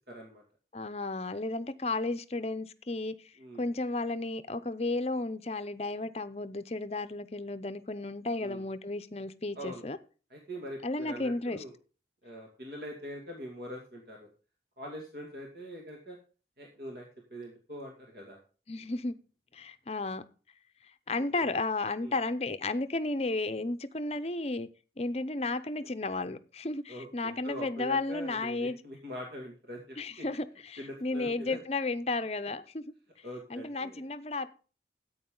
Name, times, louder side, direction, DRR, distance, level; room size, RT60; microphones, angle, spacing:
voice 1, 0.1-0.4 3.4-3.6 8.4-8.6 9.6-9.8 10.3-11.7 12.2-14.3 14.8-16.2 16.6-18.4 21.4-21.5 22.0-22.2 26.9-30.3 30.8-31.6 33.2-34.0, equal, 60° right, 2.4 m, -43 dB
voice 2, 0.7-10.0 10.8-11.6 18.7-19.1 19.5-20.2 21.1-24.7 25.0-28.8 30.0-32.8 33.5-34.5, left 2 dB, 35° left, 0.7 m, -33 dB
14.0 x 8.7 x 3.8 m
head